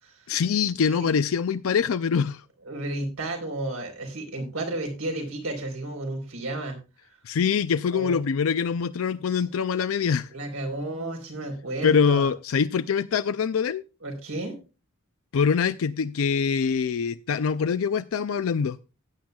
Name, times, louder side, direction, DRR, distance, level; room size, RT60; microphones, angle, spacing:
voice 1, 0.3-2.4 7.3-10.3 11.8-13.8 15.3-18.8, left 6 dB, 75° left, 0.4 m, -24 dB
voice 2, 2.7-6.8 7.9-8.2 9.3-9.4 10.3-12.3 14.0-14.6, right 2 dB, 90° right, 4.1 m, -32 dB
16.5 x 8.8 x 2.3 m
head